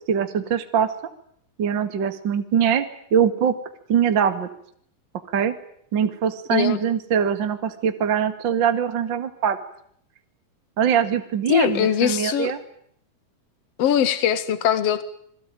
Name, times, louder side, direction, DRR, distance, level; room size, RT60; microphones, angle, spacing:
voice 1, 0.1-0.9 1.6-3.6 3.9-4.5 5.3-5.5 5.9-9.6 10.8-12.6, right 8 dB, 40° right, 9 dB, 1.9 m, -22 dB
voice 2, 11.5-12.5 13.8-15.0, left 9 dB, 50° left, 12 dB, 2.5 m, -21 dB
27.5 x 22.0 x 9.1 m, 0.67 s
omnidirectional pair, 4.4 m